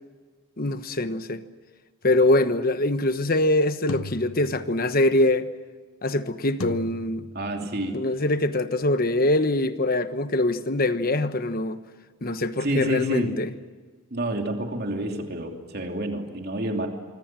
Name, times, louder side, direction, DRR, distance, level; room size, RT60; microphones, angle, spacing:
voice 1, 0.6-1.4 2.0-5.5 6.0-7.3 7.9-11.8 12.2-13.5, left 1 dB, 45° left, 1.2 m, -23 dB
sound 1, 3.9-5.1 6.6-7.8, left 2 dB, 80° left, 1.1 m, -38 dB
voice 2, 7.3-8.0 12.6-13.4 14.1-16.9, right 1 dB, 50° right, 3.0 m, -28 dB
25.0 x 25.0 x 7.6 m
head